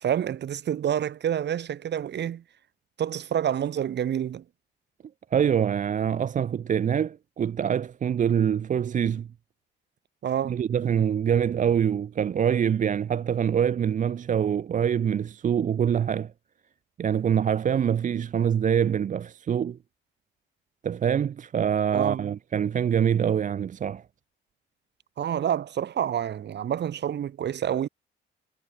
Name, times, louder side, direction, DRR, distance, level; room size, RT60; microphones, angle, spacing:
voice 1, 0.0-2.4 3.0-4.4 10.2-10.6 21.9-22.3 25.2-27.9, right 9 dB, 60° right, 2.1 m, -28 dB
voice 2, 5.3-9.3 10.4-16.3 17.0-19.8 20.8-24.0, right 8 dB, 40° right, 0.5 m, -25 dB
cardioid pair, 90°, 20 cm